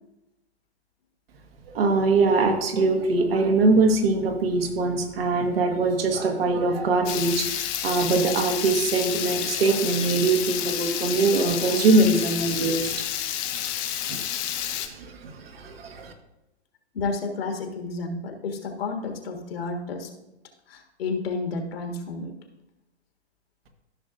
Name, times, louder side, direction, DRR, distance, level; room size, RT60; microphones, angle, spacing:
voice 1, 1.7-13.1 14.1-14.3 14.6-16.1, right 3 dB, 60° right, 3 dB, 1.6 m, -23 dB
Water tap faucet / Liquid, 7.1-14.9, left 11 dB, 25° left, 0.7 m, -30 dB
voice 2, 16.9-20.1 20.7-22.3, left 3 dB, 60° left, 4 dB, 1.7 m, -31 dB
14.0 x 6.3 x 2.6 m, 0.93 s
figure-of-eight pair, 115°, 34 cm